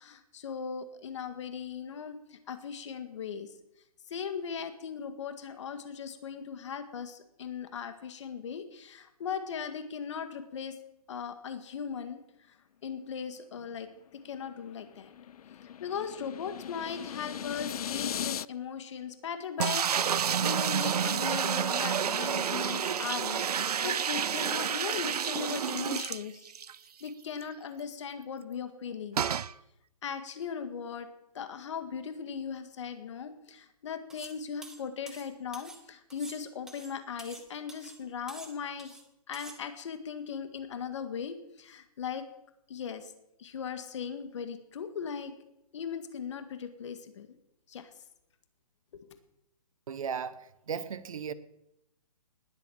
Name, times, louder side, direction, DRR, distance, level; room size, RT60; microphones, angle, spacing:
voice 1, 0.0-3.5 4.1-10.8 11.1-12.2 12.5-12.6 12.8-15.1 15.6-26.5 27.0-29.2 30.0-31.1 31.3-39.0 39.3-42.2 42.7-43.1 43.4-45.3 45.7-47.4 47.7-47.9 48.9-49.2, left 7 dB, 50° left, 8 dB, 1.8 m, -38 dB
sound 1, 14.2-18.5, left 9 dB, 70° left, 0.4 m, -38 dB
sound 2, 19.6-26.7 27.1-27.2 27.4-27.5 29.2-29.5, right 8 dB, 80° right, 0.6 m, -29 dB
sound 3, 34.1-34.4 34.6-35.8 36.1-37.4 37.7-38.0 38.3-39.0 39.3-39.6, right 2 dB, 5° right, 0.9 m, -48 dB
voice 2, 49.9-51.3, right 7 dB, 60° right, 13 dB, 1.3 m, -36 dB
20.0 x 8.1 x 7.1 m, 0.83 s
hypercardioid pair, 160°, 20 cm